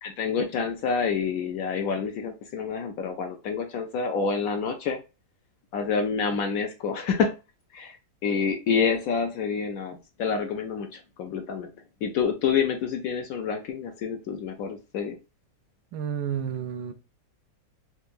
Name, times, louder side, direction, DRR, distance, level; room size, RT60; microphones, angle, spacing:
voice 1, 0.0-5.0 5.7-7.4 7.7-8.0 8.2-11.7 12.0-15.2, left 6 dB, 70° left, 0.8 m, -28 dB
voice 2, 15.9-16.9, right 8 dB, 85° right, 1.3 m, -30 dB
4.4 x 2.4 x 2.5 m
omnidirectional pair, 1.9 m